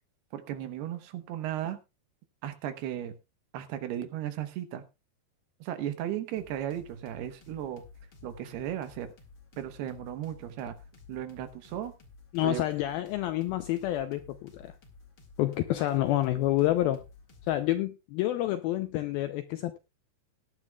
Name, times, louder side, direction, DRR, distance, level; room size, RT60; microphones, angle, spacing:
voice 1, 0.3-1.8 2.4-3.1 3.5-4.8 5.6-7.8 8.2-9.1 9.6-10.8 11.1-11.9 12.4-12.7, right 11 dB, 75° right, 2.9 m, -35 dB
sound 1, 6.4-17.6, left 4 dB, 40° left, 2.0 m, -54 dB
voice 2, 12.3-14.7 15.4-17.0 17.5-19.8, left 14 dB, 80° left, 2.1 m, -28 dB
18.5 x 11.0 x 2.3 m
omnidirectional pair, 5.0 m